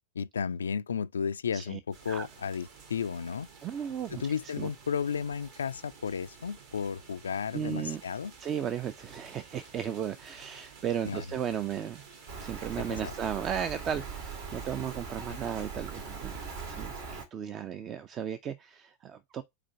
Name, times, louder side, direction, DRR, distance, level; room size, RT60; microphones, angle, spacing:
voice 1, 0.2-3.5 4.1-8.3 11.0-11.3 12.9-13.0 15.3-15.4, left 6 dB, 70° left, 0.3 m, -33 dB
sound 1, 1.9-16.7, right 5 dB, 50° right, 2.0 m, -52 dB
voice 2, 3.6-4.2 4.6-4.7 7.5-8.0 8.4-12.0 12.4-16.4 16.7-19.4, right 8 dB, 30° right, 0.5 m, -35 dB
Rain, 12.3-17.3, right 5 dB, 65° right, 2.6 m, -40 dB
4.9 x 4.4 x 5.8 m
figure-of-eight pair, 90°, 0 cm